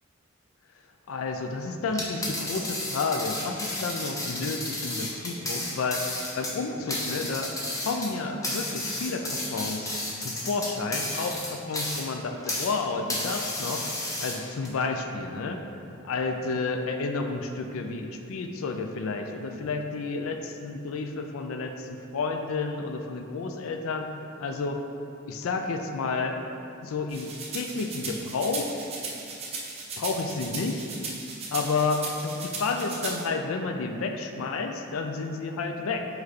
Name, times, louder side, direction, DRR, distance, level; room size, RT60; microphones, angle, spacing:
voice 1, 1.1-6.0 6.3-7.5 7.8-13.8 14.2-15.6 16.0-24.1 24.4-24.8 25.3-26.4 26.8-28.7 30.0-30.9 31.5-36.1, left 4 dB, 75° left, 5 dB, 0.4 m, -31 dB
sound 1, 1.9-12.8 13.1-14.7, left 1 dB, 15° left, 0.7 m, -32 dB
sound 2, 27.1-33.2, right 3 dB, 30° right, 0.8 m, -36 dB
5.2 x 4.6 x 4.0 m, 2.7 s
head